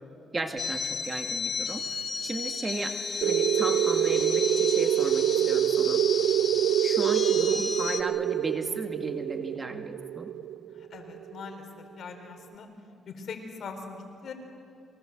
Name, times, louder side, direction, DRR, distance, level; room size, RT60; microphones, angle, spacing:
voice 1, 0.3-2.9 3.2-6.0 6.8-10.3, right 3 dB, 25° right, 5 dB, 2.2 m, -35 dB
sound 1, 0.6-8.0, left 5 dB, 40° left, 2.8 m, -33 dB
sound 2, 3.2-11.5, right 11 dB, 80° right, 0.6 m, -26 dB
voice 2, 10.8-11.6 12.0-12.7 13.1-14.3, left 5 dB, 60° left, 5 dB, 4.4 m, -41 dB
29.0 x 23.5 x 8.0 m, 2.6 s
cardioid pair, 90°, 0 cm